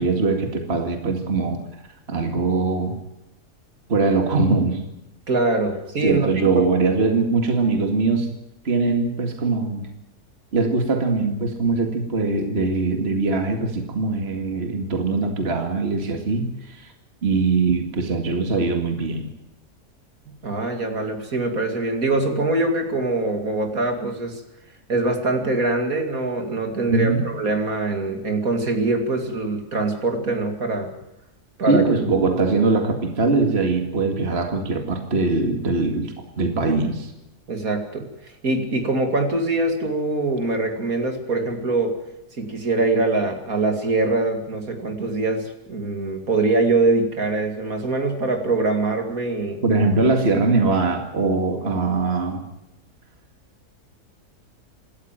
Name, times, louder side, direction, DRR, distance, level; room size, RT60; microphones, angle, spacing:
voice 1, 0.0-1.6 2.1-2.9 3.9-4.8 6.0-8.3 8.6-9.9 10.5-16.9 17.2-19.3 26.9-27.3 31.6-37.1 49.6-52.4, right 3 dB, 40° right, 4 dB, 2.4 m, -22 dB
voice 2, 5.3-6.7 20.4-24.4 24.9-30.9 31.6-31.9 37.5-38.1 38.4-41.9 42.4-49.6, right 2 dB, 60° right, 5 dB, 2.9 m, -23 dB
26.0 x 13.5 x 9.0 m, 0.90 s
omnidirectional pair, 1.7 m